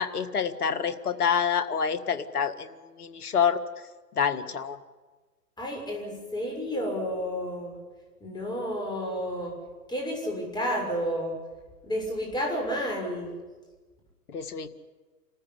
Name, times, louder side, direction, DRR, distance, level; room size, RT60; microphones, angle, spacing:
voice 1, 0.0-2.7 3.0-3.6 4.2-4.8 14.3-14.7, left 7 dB, 70° left, 10 dB, 1.8 m, -27 dB
voice 2, 5.6-7.7 8.2-9.5 9.9-11.3 11.8-13.3, equal, 10° left, 0 dB, 6.6 m, -31 dB
27.0 x 14.5 x 9.9 m, 1.3 s
figure-of-eight pair, 115°, 46 cm